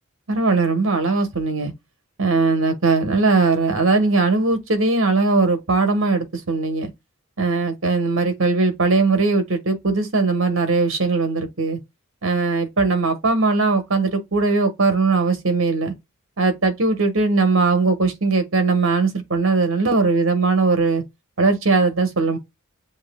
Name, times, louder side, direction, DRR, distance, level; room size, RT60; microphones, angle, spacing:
voice 1, 0.3-1.7 2.2-6.9 7.4-11.8 12.2-15.9 16.4-21.0 21.4-22.4, right 3 dB, 60° right, 1.2 m, -19 dB
7.3 x 2.8 x 2.2 m
head